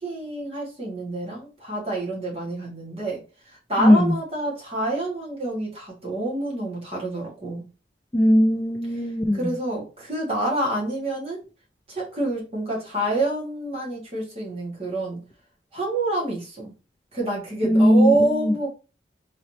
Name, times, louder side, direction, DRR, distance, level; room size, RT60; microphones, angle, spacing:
voice 1, 0.0-7.6 9.3-11.4 11.9-15.2 15.7-16.7 17.1-18.7, right 2 dB, 35° right, -3 dB, 1.6 m, -27 dB
voice 2, 3.8-4.2 8.1-9.4 17.6-18.5, equal, 15° left, 2 dB, 0.3 m, -18 dB
4.0 x 3.1 x 2.8 m, 0.32 s
head